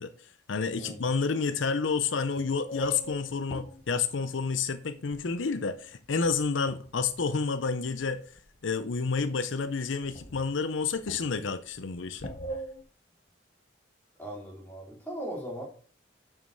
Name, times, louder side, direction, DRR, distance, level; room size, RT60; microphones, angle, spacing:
voice 1, 0.0-8.2 8.6-12.3, left 4 dB, 75° left, 0.6 m, -30 dB
sound 1, 2.7-5.5 6.0-7.3 8.0-8.6 8.8-8.9 9.1-9.2 9.6-9.7 10.0-12.8, equal, 30° left, 1.0 m, -41 dB
voice 2, 14.2-15.6, right 1 dB, 10° left, 3.4 m, -38 dB
6.5 x 6.4 x 6.3 m
head